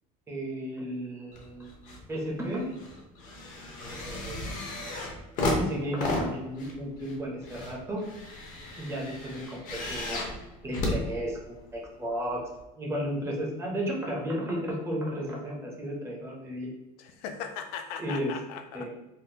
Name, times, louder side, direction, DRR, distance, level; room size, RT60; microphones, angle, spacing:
voice 1, 0.3-2.7 3.8-4.7 5.4-8.0 8.8-11.6 12.0-12.4 12.8-16.7 18.0-18.3 18.7-18.9, equal, 15° right, -3 dB, 0.6 m, -34 dB
sound 1, 1.3-2.0 2.4-11.8 12.6-12.7, left 2 dB, 40° left, 0.7 m, -34 dB
voice 2, 17.0-18.9, left 7 dB, 80° left, 6 dB, 0.4 m, -38 dB
3.6 x 2.1 x 2.7 m, 0.94 s
cardioid pair, 160°, 20 cm